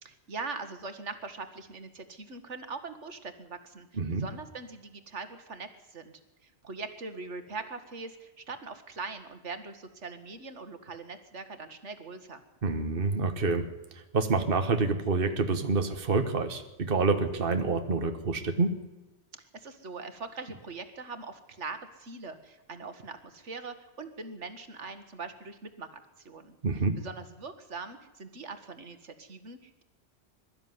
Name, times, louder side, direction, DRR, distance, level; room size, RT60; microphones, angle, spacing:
voice 1, 0.0-12.4 19.5-26.6 27.0-29.8, right 4 dB, 90° right, 9 dB, 2.0 m, -42 dB
voice 2, 4.0-4.3 12.6-13.7 14.1-18.8 26.6-26.9, right 4 dB, 50° right, 7 dB, 1.6 m, -27 dB
22.0 x 13.0 x 9.6 m, 1.1 s
omnidirectional pair, 1.2 m